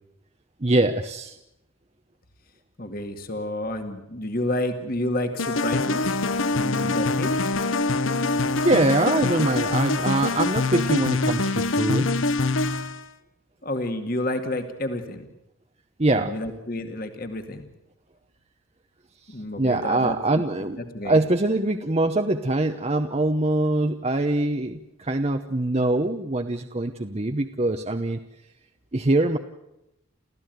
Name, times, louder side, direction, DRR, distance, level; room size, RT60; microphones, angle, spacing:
voice 1, 0.6-1.4 8.6-12.1 16.0-16.4 19.3-20.8 21.0-28.2 28.9-29.4, right 2 dB, 30° right, 6 dB, 0.9 m, -23 dB
voice 2, 2.8-7.5 13.6-15.3 16.1-17.6 19.3-20.4 20.9-21.2, left 1 dB, 45° left, 6 dB, 2.1 m, -30 dB
sound 1, 5.4-13.0, left 3 dB, 85° left, 1.1 m, -24 dB
30.0 x 14.5 x 9.3 m, 0.88 s
head